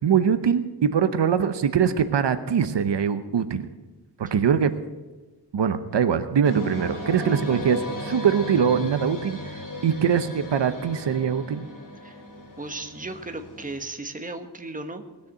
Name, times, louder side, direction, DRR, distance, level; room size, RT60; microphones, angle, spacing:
voice 1, 0.0-3.7 4.2-4.7 5.5-11.6, right 7 dB, 75° right, 11 dB, 0.9 m, -23 dB
sound 1, 6.4-13.8, equal, 45° left, 3.3 m, -36 dB
voice 2, 12.6-15.0, right 2 dB, 20° right, 7 dB, 1.2 m, -35 dB
19.5 x 6.8 x 7.9 m, 1.2 s
wide cardioid pair, 120°, 43 cm